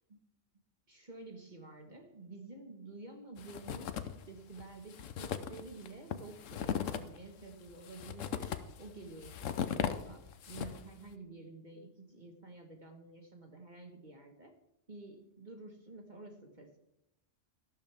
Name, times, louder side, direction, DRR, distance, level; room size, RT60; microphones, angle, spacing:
voice 1, 0.9-14.5 14.9-16.8, right 3 dB, 40° right, 3 dB, 1.6 m, -50 dB
sound 1, 3.4-4.3 4.6-4.7 4.9-10.9, left 8 dB, 85° left, 1.1 m, -38 dB
13.0 x 12.0 x 3.5 m, 0.86 s
omnidirectional pair, 1.3 m